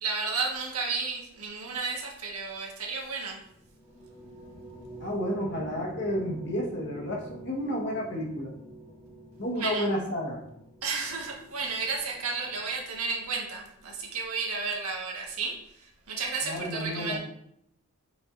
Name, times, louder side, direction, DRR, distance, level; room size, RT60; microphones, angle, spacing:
voice 1, 0.0-3.4 9.5-9.9 10.8-17.2, right 4 dB, 85° right, -1 dB, 1.6 m, -32 dB
sound 1, 3.4-13.1, right 2 dB, 25° left, 1.2 m, -47 dB
voice 2, 5.0-8.5 9.4-10.4 16.5-17.2, equal, 50° left, -2 dB, 1.5 m, -31 dB
7.1 x 5.3 x 2.6 m, 0.76 s
head